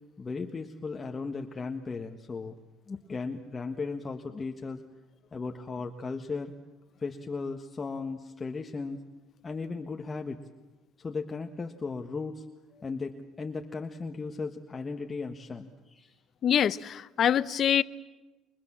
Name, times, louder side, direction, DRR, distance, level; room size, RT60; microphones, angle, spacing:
voice 1, 0.2-2.6 2.9-4.8 5.3-6.5 7.0-9.0 9.4-10.4 11.0-12.4 12.8-16.1, left 4 dB, 25° left, 1.5 m, -36 dB
voice 2, 16.4-17.8, left 9 dB, 50° left, 0.8 m, -25 dB
29.5 x 24.0 x 7.5 m
cardioid pair, 110°, 0 cm